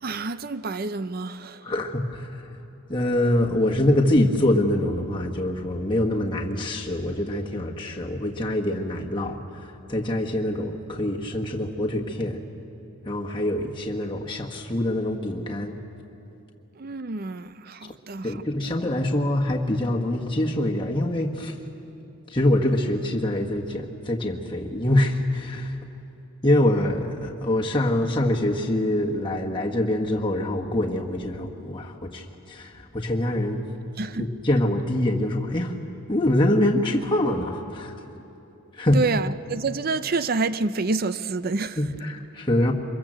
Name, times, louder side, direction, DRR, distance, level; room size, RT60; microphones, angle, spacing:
voice 1, 0.0-1.7 16.8-18.4 34.0-34.3 38.9-41.8, right 3 dB, 45° right, 0.5 m, -28 dB
voice 2, 1.6-2.3 2.9-9.4 9.9-12.4 13.0-15.8 18.2-21.5 22.3-25.8 26.4-33.6 34.2-35.7 36.1-37.9 38.8-39.0 41.8-42.7, left 1 dB, 20° left, 1.5 m, -24 dB
25.0 x 22.0 x 7.7 m
head